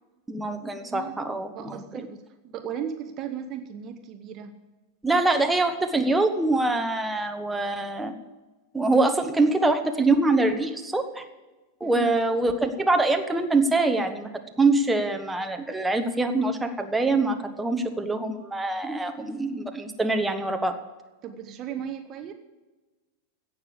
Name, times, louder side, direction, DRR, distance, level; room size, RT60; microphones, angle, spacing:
voice 1, 0.3-1.8 5.0-8.1 8.7-11.2 11.8-14.3 14.6-20.7, right 2 dB, 10° right, 5 dB, 1.3 m, -24 dB
voice 2, 0.8-1.2 1.5-4.5 11.8-12.1 21.2-22.3, right 8 dB, 35° right, 8 dB, 1.1 m, -36 dB
16.5 x 6.8 x 8.6 m, 1.2 s
figure-of-eight pair, 90°, 0 cm